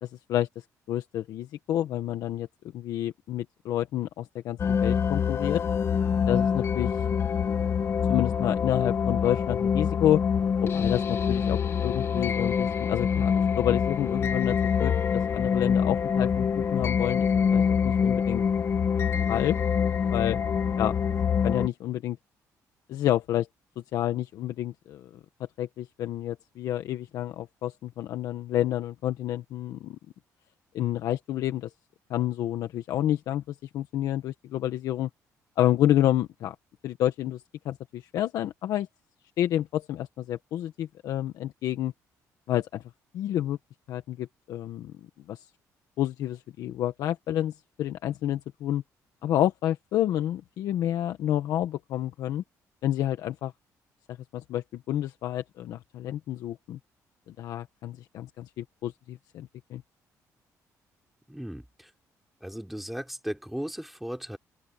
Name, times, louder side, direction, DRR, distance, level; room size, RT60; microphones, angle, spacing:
voice 1, 0.0-2.5 2.7-5.6 6.3-7.0 8.1-10.2 10.6-16.5 16.7-18.4 19.3-19.6 20.1-20.4 20.8-20.9 21.4-22.2 22.9-23.5 23.9-25.2 25.6-30.0 30.7-31.7 32.1-35.1 35.6-36.5 36.8-38.9 39.4-41.9 42.5-42.8 43.1-43.6 43.9-44.9 45.3-45.5 46.0-48.8 49.2-52.4 52.8-53.5 54.1-56.8 57.3-59.8, left 12 dB, 80° left, 1.4 m, -29 dB
sound 1, 4.6-21.7, left 7 dB, 45° left, 1.3 m, -25 dB
voice 2, 61.3-61.9 62.4-64.4, equal, 5° right, 3.3 m, -36 dB
open air
cardioid pair, 120°, 6 cm